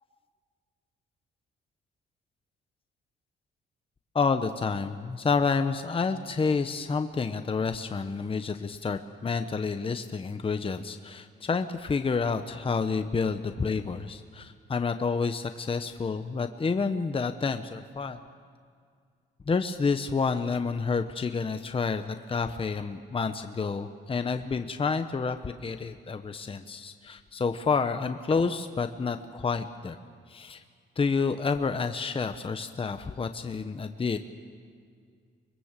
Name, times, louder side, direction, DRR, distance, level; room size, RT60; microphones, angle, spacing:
voice 1, 4.1-18.2 19.5-30.0 30.3-30.6 31.0-34.2, left 4 dB, 25° left, 8 dB, 1.0 m, -29 dB
24.5 x 21.5 x 7.5 m, 2.1 s
cardioid pair, 90°, 20 cm